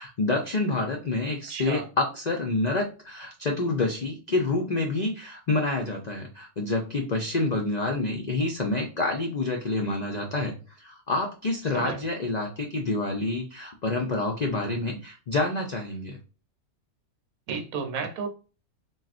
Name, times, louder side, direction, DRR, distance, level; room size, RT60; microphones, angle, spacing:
voice 1, 0.0-16.2, left 2 dB, 60° left, 0.4 m, -28 dB
voice 2, 1.5-1.9 11.7-12.0 17.5-18.3, right 5 dB, 75° right, 1.1 m, -32 dB
3.9 x 2.4 x 2.4 m
omnidirectional pair, 1.5 m